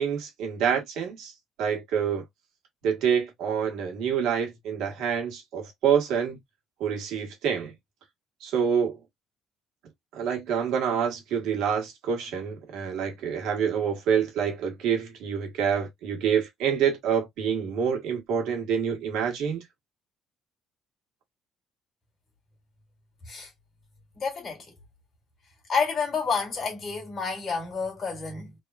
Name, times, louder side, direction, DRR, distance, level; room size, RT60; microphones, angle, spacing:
voice 1, 0.0-1.3 1.6-2.2 2.8-6.4 6.8-7.7 8.4-9.0 10.1-19.6, right 7 dB, 80° right, 1.4 m, -27 dB
voice 2, 24.2-24.7 25.7-28.6, left 5 dB, 30° left, 1.8 m, -29 dB
3.5 x 2.3 x 2.3 m
cardioid pair, 165°, 0 cm